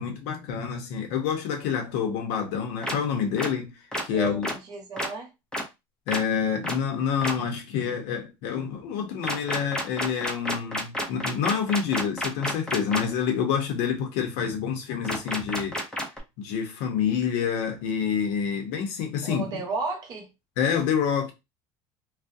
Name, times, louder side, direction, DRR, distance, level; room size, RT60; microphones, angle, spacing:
voice 1, 0.0-4.5 6.1-15.8 16.4-19.6 20.6-21.3, left 7 dB, 80° left, 0.7 m, -27 dB
sound 1, 2.8-2.9 3.4-3.5 3.9-4.0 4.4-4.5 5.0-5.1 5.5-5.6 6.1-6.2 6.6-6.8 7.2-7.3 9.2-13.0 15.0-16.2, equal, 5° left, 0.5 m, -29 dB
voice 2, 4.1-5.3 19.2-20.3, right 3 dB, 40° right, 0.9 m, -33 dB
2.4 x 2.1 x 2.6 m
cardioid pair, 155°, 11 cm